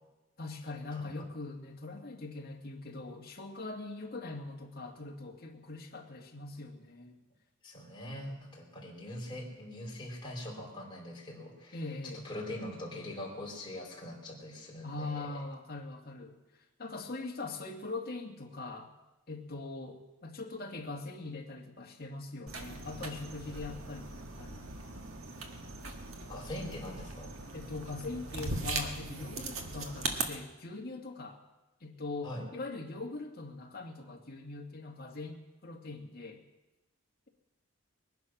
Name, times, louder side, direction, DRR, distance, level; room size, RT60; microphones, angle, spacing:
voice 1, 0.4-7.2 11.7-12.2 14.8-18.9 19.3-24.7 26.6-26.8 27.5-31.4 31.8-36.4, left 3 dB, 45° left, 1 dB, 2.1 m, -42 dB
voice 2, 7.6-15.4 26.3-27.4 32.2-32.4, left 1 dB, 20° left, -3 dB, 4.1 m, -42 dB
sound 1, 22.5-30.2, right 3 dB, 75° right, 1.7 m, -39 dB
21.5 x 10.0 x 6.3 m, 1.0 s
head